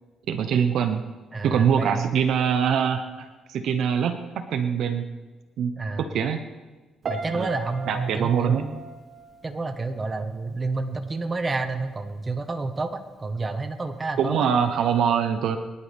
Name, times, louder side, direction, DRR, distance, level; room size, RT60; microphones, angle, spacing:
voice 1, 0.3-1.0 1.4-5.0 5.6-5.7 6.0-6.4 7.3-7.5 7.9-8.7 14.2-15.6, right 7 dB, 75° right, 8 dB, 0.9 m, -23 dB
voice 2, 1.3-2.1 5.8-6.1 7.1-8.8 9.4-14.5, right 3 dB, 25° right, 7 dB, 1.4 m, -29 dB
Piano, 7.0-10.1 10.4-10.9, right 4 dB, 45° right, 1.6 m, -37 dB
22.5 x 11.5 x 3.5 m, 1.4 s
cardioid pair, 90°, 0 cm